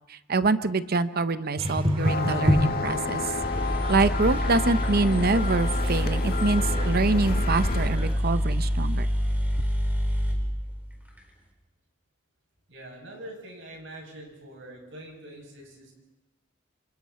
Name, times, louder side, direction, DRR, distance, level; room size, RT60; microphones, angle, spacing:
voice 1, 0.1-3.2 3.9-9.1, right 3 dB, 50° right, 12 dB, 0.8 m, -25 dB
sound 1, 1.6-8.1, equal, 30° right, 2.8 m, -30 dB
sound 2, 2.0-7.9, left 3 dB, 55° left, 1.6 m, -31 dB
sound 3, 3.4-11.2, equal, 10° right, 4.1 m, -27 dB
voice 2, 12.7-15.9, right 1 dB, 75° right, 0 dB, 7.7 m, -44 dB
28.0 x 27.0 x 4.3 m, 0.99 s
head